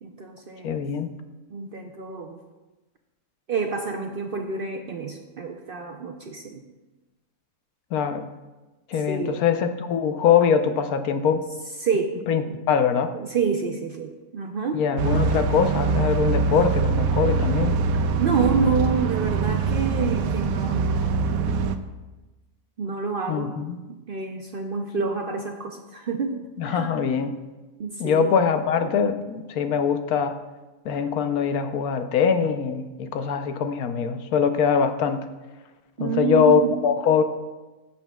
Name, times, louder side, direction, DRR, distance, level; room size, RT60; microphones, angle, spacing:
voice 1, 0.0-0.8 1.5-2.4 3.5-6.6 9.0-9.4 11.8-12.2 12.5-12.6 13.1-14.8 18.2-21.4 22.8-23.6 23.9-27.0 27.8-28.3 36.0-36.7, right 5 dB, 60° right, 4 dB, 0.6 m, -28 dB
voice 2, 0.6-1.1 7.9-8.3 8.9-11.4 12.3-12.4 12.7-13.1 14.7-17.8 23.3-23.8 26.6-27.4 28.0-30.4 30.8-35.3 36.0-37.2, left 6 dB, 85° left, 8 dB, 1.2 m, -22 dB
sound 1, 15.0-21.8, right 4 dB, 80° right, 1.0 m, -23 dB
16.5 x 7.1 x 2.3 m, 1.2 s
omnidirectional pair, 1.5 m